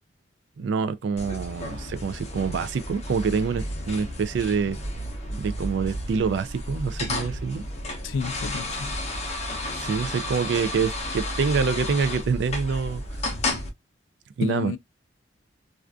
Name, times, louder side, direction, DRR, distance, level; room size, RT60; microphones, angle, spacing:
voice 1, 0.6-4.8 5.3-7.6 9.7-13.0 14.4-14.8, right 5 dB, 65° right, 0.3 m, -26 dB
sound 1, 1.2-13.7, left 1 dB, 35° left, 0.6 m, -32 dB
voice 2, 8.0-9.0 14.4-14.8, left 6 dB, 80° left, 0.3 m, -30 dB
2.4 x 2.4 x 2.2 m
head